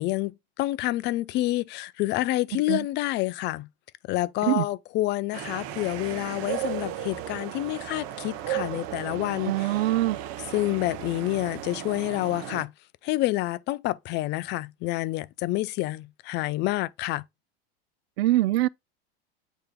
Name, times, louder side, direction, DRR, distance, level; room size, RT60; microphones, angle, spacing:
voice 1, 0.0-3.7 4.1-9.8 10.5-12.7 13.0-17.2, left 17 dB, 35° left, 0.4 m, -28 dB
sound 1, 5.3-12.6, right 12 dB, 50° right, 0.8 m, -35 dB
voice 2, 9.5-10.2 18.2-18.7, right 16 dB, 75° right, 0.5 m, -23 dB
8.7 x 3.0 x 3.8 m
hypercardioid pair, 115°, 31 cm